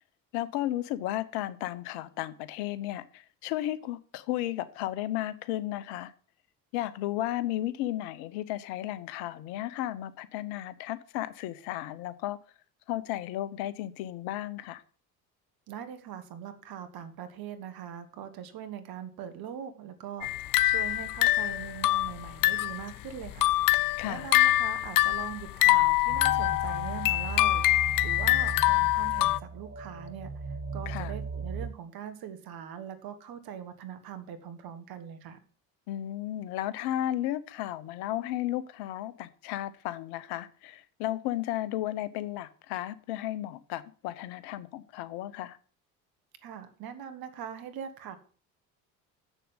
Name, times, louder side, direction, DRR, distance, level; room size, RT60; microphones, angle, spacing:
voice 1, 0.3-6.1 6.7-12.4 12.9-14.8 24.0-24.3 30.9-31.1 35.9-45.6, left 14 dB, 70° left, 1.0 m, -34 dB
voice 2, 15.7-30.3 30.7-35.4 46.4-48.2, right 8 dB, 60° right, 1.8 m, -42 dB
sound 1, 20.2-22.8 23.2-29.4, left 17 dB, 55° left, 0.6 m, -25 dB
sound 2, 26.1-31.7, right 3 dB, 25° right, 1.8 m, -37 dB
7.4 x 6.7 x 8.0 m
hypercardioid pair, 65°, 40 cm